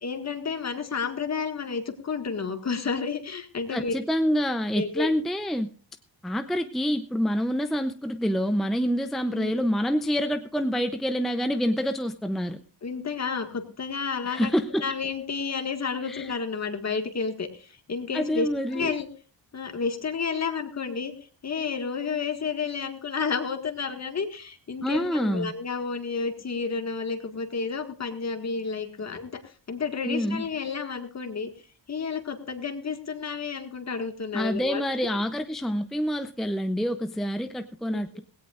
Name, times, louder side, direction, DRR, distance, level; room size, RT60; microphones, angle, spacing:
voice 1, 0.0-3.9 4.7-5.1 9.3-9.5 12.8-19.1 19.5-21.1 21.4-31.5 31.9-34.8 37.9-38.0, left 5 dB, 40° left, 6 dB, 1.8 m, -31 dB
voice 2, 3.7-5.7 6.2-12.6 14.3-14.8 16.1-16.4 18.1-18.9 24.8-25.5 30.0-30.4 34.3-38.2, equal, ahead, 8 dB, 0.6 m, -27 dB
18.0 x 17.0 x 2.5 m, 0.38 s
cardioid pair, 120°, 43 cm